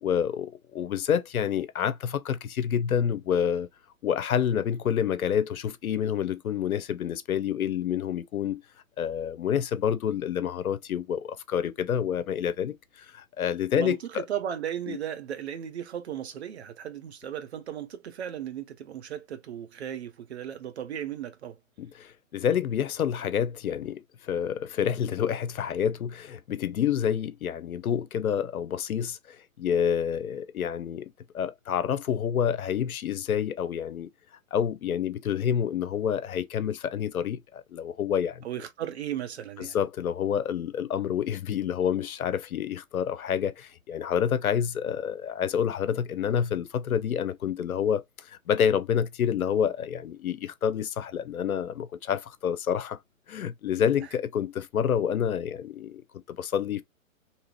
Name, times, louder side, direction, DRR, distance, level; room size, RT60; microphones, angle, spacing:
voice 1, 0.0-3.7 4.0-8.6 9.0-14.2 14.9-15.0 21.8-31.1 31.3-34.1 34.5-38.4 39.6-53.0 53.3-56.0 56.3-56.8, left 8 dB, 80° left, 0.6 m, -28 dB
voice 2, 13.8-21.6 38.4-39.8, right 10 dB, 50° right, 0.7 m, -36 dB
2.8 x 2.5 x 2.9 m
figure-of-eight pair, 125°, 42 cm